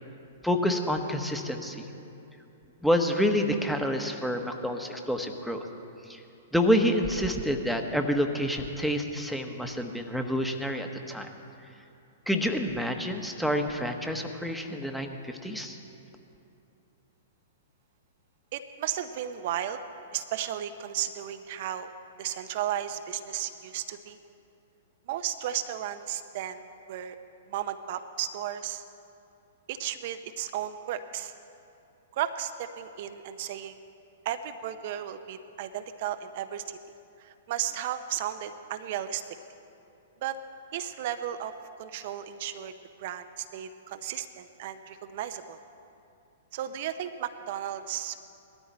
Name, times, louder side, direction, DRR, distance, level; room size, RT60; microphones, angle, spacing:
voice 1, 0.4-1.8 2.8-5.7 6.1-6.2 6.5-11.3 12.3-15.8, equal, ahead, 4 dB, 1.2 m, -28 dB
voice 2, 18.5-19.8 20.1-21.9 22.2-24.2 25.1-27.2 27.5-28.8 29.7-31.3 32.1-33.8 34.2-36.8 37.2-39.4 40.2-40.4 40.7-42.7 43.0-45.6 46.5-48.3, right 11 dB, 55° right, 9 dB, 0.7 m, -34 dB
19.0 x 13.0 x 4.2 m, 2.7 s
hypercardioid pair, 110°, 0 cm